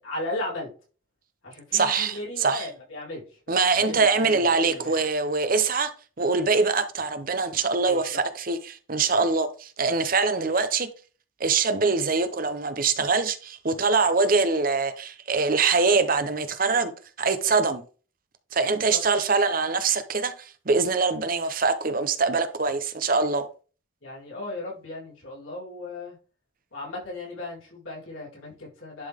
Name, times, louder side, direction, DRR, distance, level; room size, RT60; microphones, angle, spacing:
voice 1, 0.0-0.7 1.4-5.0 7.9-8.2 18.7-19.0 24.0-26.2 26.7-29.1, left 2 dB, 90° left, 4.4 m, -36 dB
voice 2, 1.7-2.7 3.5-5.9 6.2-10.9 11.4-16.9 17.2-17.8 18.5-23.5, right 4 dB, 45° right, 0.8 m, -23 dB
10.5 x 3.9 x 3.6 m
head